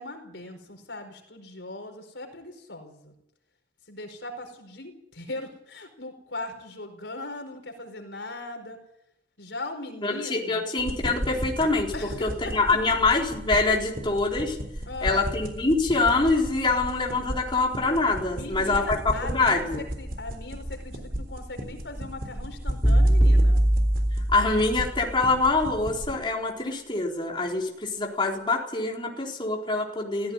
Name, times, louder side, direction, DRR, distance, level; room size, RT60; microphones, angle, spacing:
voice 1, 0.0-3.1 3.9-8.8 9.4-10.6 11.9-12.8 14.9-15.3 18.3-23.6, left 2 dB, 80° left, 5 dB, 4.7 m, -39 dB
voice 2, 10.0-11.9 12.2-14.6 15.0-19.8 24.3-30.3, left 3 dB, 30° left, -1 dB, 4.0 m, -25 dB
sound 1, 10.8-26.1, equal, 55° right, 3.7 m, -35 dB
sound 2, 22.8-24.9, right 1 dB, ahead, 5.0 m, -20 dB
16.5 x 16.5 x 9.7 m, 0.78 s
head